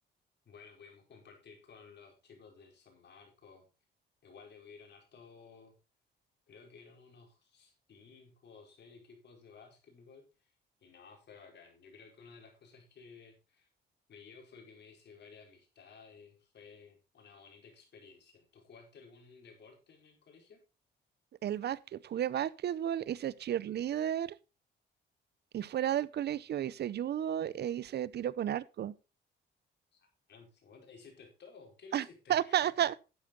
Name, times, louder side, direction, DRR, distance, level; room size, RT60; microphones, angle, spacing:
voice 1, 0.4-3.6 4.2-5.7 6.5-10.5 10.8-13.7 14.1-20.6 26.4-26.5 29.9-30.0 30.3-33.0, left 5 dB, 60° left, 4.9 m, -56 dB
voice 2, 21.4-24.3 25.5-28.9 31.9-32.0 32.3-32.9, right 10 dB, 55° right, 0.7 m, -32 dB
12.0 x 8.6 x 3.9 m
cardioid pair, 90°, 20 cm